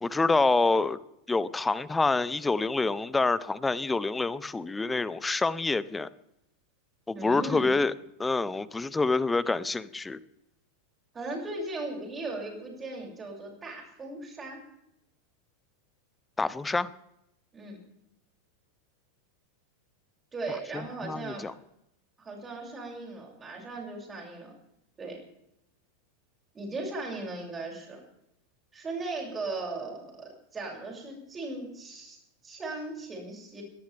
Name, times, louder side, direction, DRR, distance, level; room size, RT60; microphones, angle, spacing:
voice 1, 0.0-1.0 1.3-6.1 7.1-7.9 8.2-10.2 16.4-16.9 21.0-21.5, left 3 dB, 10° left, 20 dB, 0.7 m, -27 dB
voice 2, 7.1-7.7 11.1-14.6 17.5-17.8 20.3-21.4 22.2-24.5 25.0-25.2 26.5-28.0 28.7-32.2 32.4-33.6, right 2 dB, 15° right, 0 dB, 6.8 m, -37 dB
22.0 x 18.5 x 3.5 m, 0.81 s
figure-of-eight pair, 90°, 0 cm